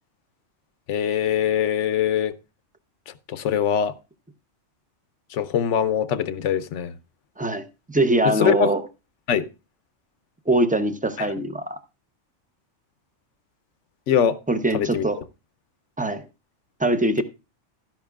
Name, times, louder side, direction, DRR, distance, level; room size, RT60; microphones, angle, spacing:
voice 1, 0.9-2.3 3.1-3.9 5.3-6.9 8.2-8.7 9.3-9.5 11.2-11.3 14.1-14.4 14.7-15.1, left 8 dB, 80° left, 1.0 m, -23 dB
voice 2, 7.4-8.8 10.5-11.8 14.5-15.2 16.0-16.2 16.8-17.2, right 1 dB, 10° right, 0.5 m, -22 dB
12.0 x 10.5 x 2.3 m
omnidirectional pair, 1.2 m